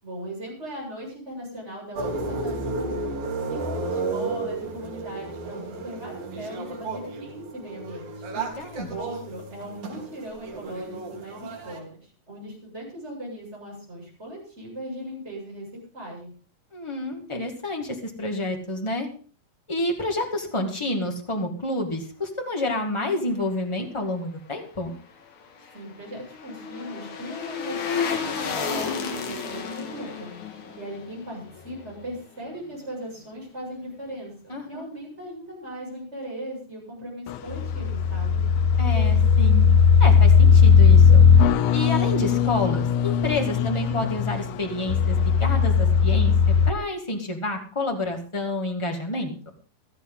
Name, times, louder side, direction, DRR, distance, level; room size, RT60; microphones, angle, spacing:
voice 1, 0.0-3.1 3.5-8.2 8.9-15.7 15.9-16.3 25.7-30.3 30.7-38.4, right 1 dB, 15° right, -4 dB, 7.4 m, -38 dB
sound 1, 2.0-11.8, right 3 dB, 85° right, 4.4 m, -33 dB
voice 2, 8.3-8.9 16.7-19.1 19.7-24.9 34.5-34.8 38.8-39.7 40.0-41.2 41.7-46.3 46.7-49.3, left 2 dB, 15° left, 2 dB, 1.1 m, -29 dB
sound 2, 25.2-32.4 32.7-32.8, left 6 dB, 60° left, 3.0 m, -32 dB
sound 3, 37.3-46.7, left 6 dB, 85° left, 2.7 m, -18 dB
16.5 x 13.0 x 3.9 m, 0.39 s
omnidirectional pair, 4.0 m